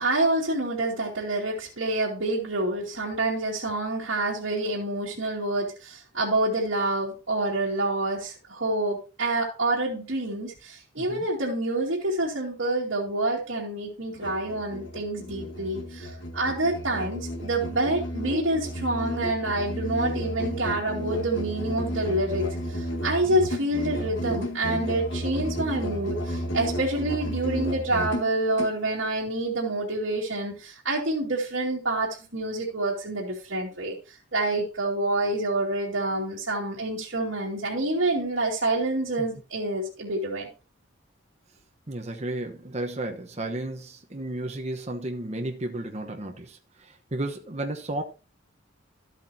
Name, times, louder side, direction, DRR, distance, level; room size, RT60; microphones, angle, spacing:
voice 1, 0.0-34.0 34.3-40.5, right 2 dB, 75° right, 2.4 m, -27 dB
voice 2, 11.0-11.3 39.2-39.3 41.9-48.0, right 1 dB, 35° right, 1.0 m, -33 dB
Musical instrument, 14.1-28.8, equal, 70° left, 1.9 m, -33 dB
12.5 x 8.3 x 2.8 m
head